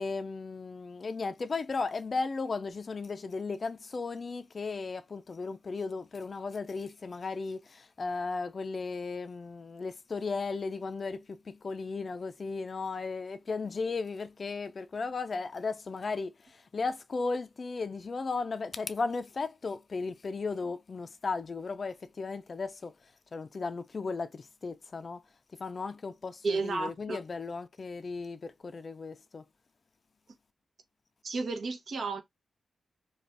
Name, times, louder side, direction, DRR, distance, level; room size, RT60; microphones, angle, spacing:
voice 1, 0.0-25.2 25.6-29.4, left 4 dB, 50° left, 0.3 m, -35 dB
voice 2, 26.4-27.2 31.2-32.2, right 3 dB, 65° right, 0.7 m, -32 dB
2.5 x 2.3 x 3.3 m
cardioid pair, 55°, 0 cm